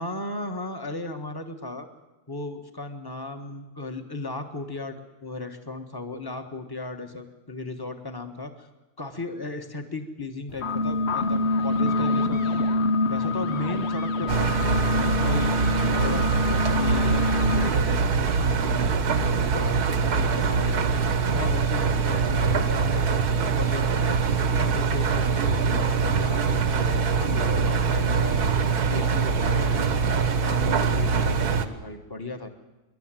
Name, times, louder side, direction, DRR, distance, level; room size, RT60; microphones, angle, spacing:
voice 1, 0.0-1.9 2.3-8.7 9.0-12.7 13.1-15.6 16.0-19.8 20.1-20.9 21.3-24.2 24.6-28.5 28.9-32.5, left 2 dB, 15° left, 6 dB, 1.4 m, -36 dB
sound 1, 10.5-17.7, left 2 dB, 50° left, 1.0 m, -25 dB
Engine, 14.3-31.7, right 5 dB, 80° right, 1.6 m, -23 dB
26.0 x 12.0 x 9.1 m, 1.1 s
omnidirectional pair, 1.6 m